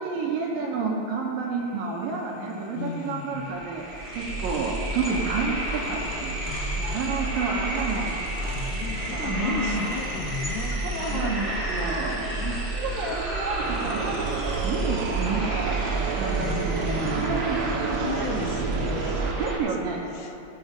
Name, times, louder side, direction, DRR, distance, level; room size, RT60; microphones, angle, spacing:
voice 1, 0.0-3.9 4.1-6.5 6.8-8.8 9.1-9.9 10.8-18.5 18.7-18.9 19.2-20.1, right 4 dB, 70° right, -2 dB, 2.4 m, -30 dB
sound 1, 2.6-2.7 2.9-19.6, right 1 dB, 25° right, 1.1 m, -30 dB
voice 2, 2.7-3.5 6.5-7.0 8.5-11.6 12.1-12.6 16.4-19.4 20.1-20.4, left 6 dB, 80° left, 5 dB, 2.2 m, -35 dB
sound 2, 13.6-19.3, right 6 dB, 90° right, 1.9 m, -30 dB
17.5 x 6.9 x 5.1 m, 2.7 s
omnidirectional pair, 4.7 m